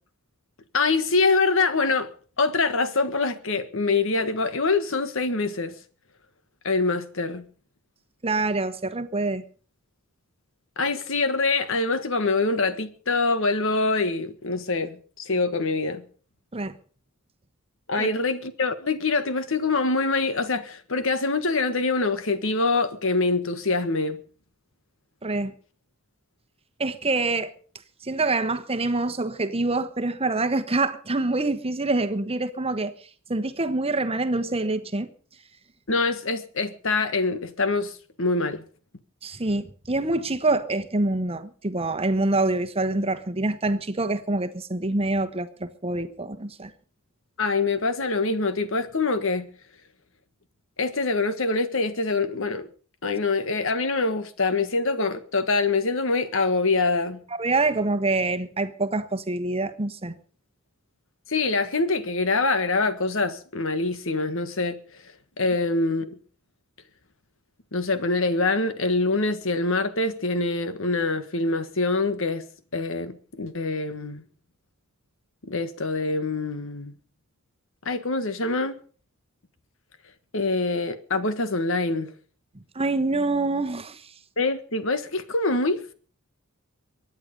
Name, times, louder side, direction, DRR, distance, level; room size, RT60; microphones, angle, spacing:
voice 1, 0.7-2.1 2.4-5.7 6.6-7.4 10.8-16.0 17.9-24.2 35.9-38.6 47.4-49.5 50.8-52.7 53.0-57.2 61.3-65.0 65.4-66.2 67.7-72.4 72.7-74.2 75.4-76.9 77.8-78.8 80.3-82.1 84.4-85.9, left 3 dB, 65° left, 1.5 m, -25 dB
voice 2, 8.2-9.4 16.5-16.8 18.0-18.1 25.2-25.5 26.8-27.5 28.0-32.9 33.3-35.1 39.2-46.7 57.3-60.2 82.7-84.1, right 2 dB, 25° right, 1.2 m, -26 dB
23.5 x 9.8 x 5.3 m
head